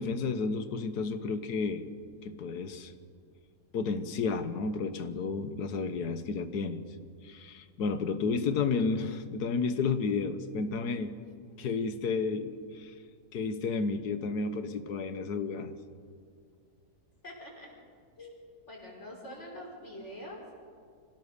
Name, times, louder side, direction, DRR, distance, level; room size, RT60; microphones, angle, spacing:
voice 1, 0.0-1.9 2.2-2.9 3.7-6.8 7.2-11.2 11.6-12.9 13.3-15.7, left 4 dB, 85° left, 10 dB, 1.7 m, -32 dB
voice 2, 17.2-17.7 18.2-18.3 18.7-20.4, left 1 dB, 45° left, -2 dB, 5.4 m, -44 dB
26.0 x 17.0 x 6.7 m, 2.2 s
omnidirectional pair, 1.6 m